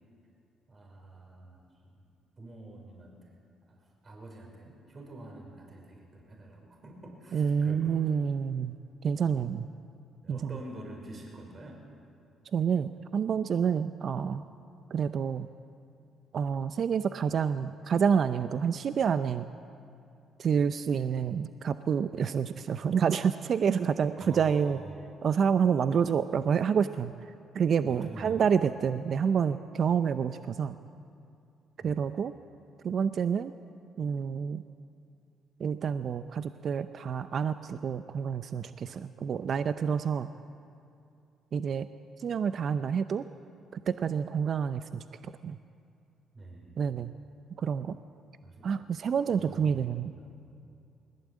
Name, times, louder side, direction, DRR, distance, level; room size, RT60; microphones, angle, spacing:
voice 1, 0.7-1.9 2.4-3.4 3.7-8.2 10.2-11.8 24.2-25.0 27.9-28.4 31.8-32.2 46.3-46.8 48.4-48.7 49.4-50.2, right 1 dB, 40° right, 1 dB, 5.3 m, -47 dB
voice 2, 7.3-8.8 9.0-9.7 10.3-10.6 12.5-14.4 14.9-15.5 16.3-19.5 20.4-24.8 25.2-27.1 27.5-30.8 31.8-32.3 32.8-33.5 34.0-34.6 35.6-40.3 41.5-41.9 42.2-43.2 43.7-45.0 45.4-45.6 46.8-47.1 47.6-48.0 48.6-50.1, right 7 dB, 55° right, 11 dB, 0.7 m, -28 dB
21.0 x 17.0 x 8.5 m, 2.5 s
supercardioid pair, 55°, 0 cm